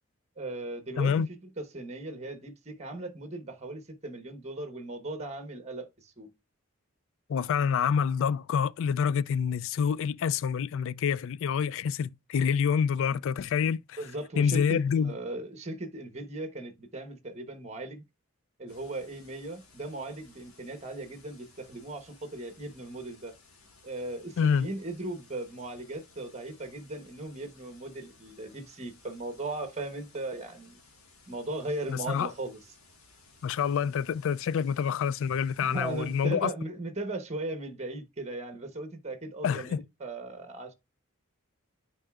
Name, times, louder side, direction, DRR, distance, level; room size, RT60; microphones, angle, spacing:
voice 1, 0.4-1.2 1.6-6.3 14.0-18.0 18.6-23.3 23.8-30.8 31.3-32.6 35.6-40.7, right 2 dB, 30° right, 1.1 m, -38 dB
voice 2, 1.0-1.3 7.3-14.0 14.4-15.1 24.4-24.7 31.9-32.3 33.4-36.5 39.4-39.8, left 7 dB, 65° left, 0.3 m, -27 dB
sound 1, 18.7-36.3, left 3 dB, 85° left, 1.7 m, -59 dB
9.0 x 4.8 x 2.4 m
head